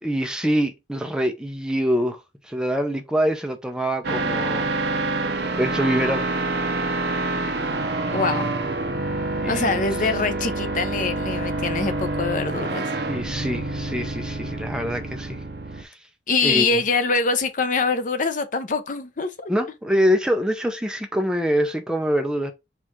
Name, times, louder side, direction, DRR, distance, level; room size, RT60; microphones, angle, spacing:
voice 1, 0.0-5.1 5.6-6.3 9.4-9.8 13.1-15.4 15.7-16.0 16.4-16.8 19.5-22.5, equal, 5° right, 0.5 m, -25 dB
sound 1, 4.0-15.8, right 2 dB, 60° right, 0.7 m, -27 dB
voice 2, 8.1-8.5 9.5-12.9 16.3-19.5, left 4 dB, 45° left, 0.6 m, -24 dB
4.4 x 2.4 x 4.7 m
head